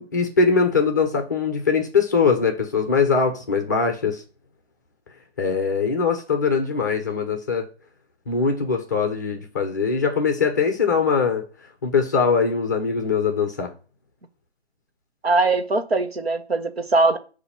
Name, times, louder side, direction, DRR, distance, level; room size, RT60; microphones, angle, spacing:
voice 1, 0.0-4.2 5.4-7.7 8.3-11.4 11.8-13.7, left 5 dB, 15° left, 0.6 m, -21 dB
voice 2, 15.2-17.2, right 3 dB, 65° right, 1.3 m, -21 dB
8.1 x 2.7 x 5.5 m
figure-of-eight pair, 145°, 33 cm